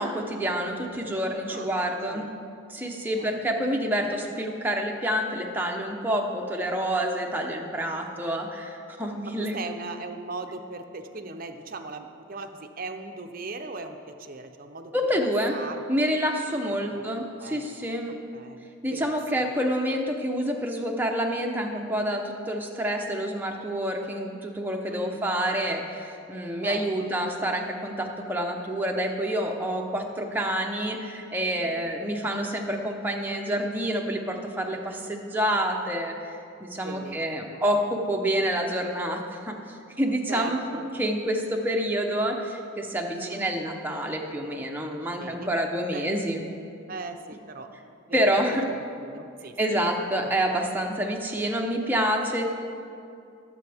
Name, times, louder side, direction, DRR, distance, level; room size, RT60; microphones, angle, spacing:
voice 1, 0.0-2.3 2.7-9.6 14.9-15.6 15.9-18.1 18.8-46.4 48.1-48.7 49.6-52.4, equal, 10° right, 1 dB, 0.8 m, -28 dB
voice 2, 9.2-15.8 16.8-17.0 17.4-17.7 18.3-19.5 24.9-25.2 26.6-27.1 31.5-31.8 36.8-37.6 40.3-40.8 43.1-43.5 45.2-45.5 45.9-46.1 46.9-47.7 48.1-48.4 49.0-49.8, right 3 dB, 45° right, 6 dB, 0.7 m, -39 dB
20.0 x 7.6 x 3.5 m, 2.5 s
head